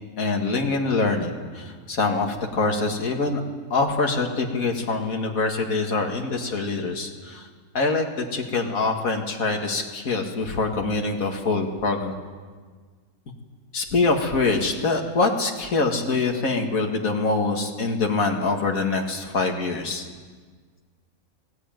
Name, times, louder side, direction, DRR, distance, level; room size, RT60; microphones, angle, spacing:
voice 1, 0.2-3.4 3.7-7.5 7.7-12.2 13.7-20.0, left 3 dB, 70° left, 2 dB, 2.4 m, -24 dB
19.0 x 16.5 x 9.1 m, 1.5 s
omnidirectional pair, 1.5 m